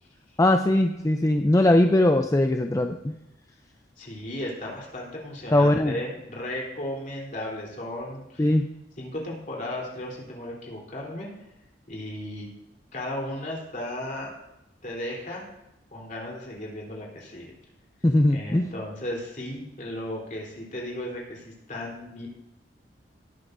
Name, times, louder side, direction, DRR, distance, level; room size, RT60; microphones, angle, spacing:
voice 1, 0.4-3.2 5.5-6.0 8.4-8.7 18.0-18.7, left 1 dB, 20° left, 5 dB, 0.5 m, -20 dB
voice 2, 4.0-8.5 9.0-11.3 11.9-12.5 12.9-14.3 14.8-15.5 15.9-17.5 18.3-22.3, left 1 dB, 45° left, -2 dB, 3.6 m, -35 dB
19.0 x 9.6 x 2.7 m, 0.91 s
head